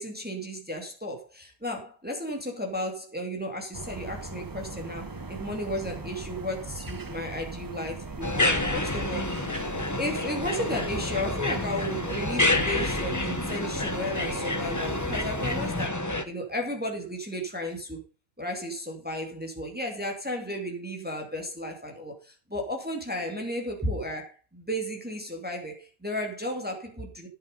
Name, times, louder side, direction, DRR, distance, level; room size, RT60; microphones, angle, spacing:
voice 1, 0.0-9.5 10.0-18.0 18.4-27.3, equal, 5° right, 2.5 m, -34 dB
sound 1, 3.7-15.9, right 3 dB, 25° right, 0.5 m, -39 dB
sound 2, 8.2-16.2, left 2 dB, 15° left, 0.9 m, -28 dB
10.5 x 9.2 x 5.3 m
omnidirectional pair, 1.5 m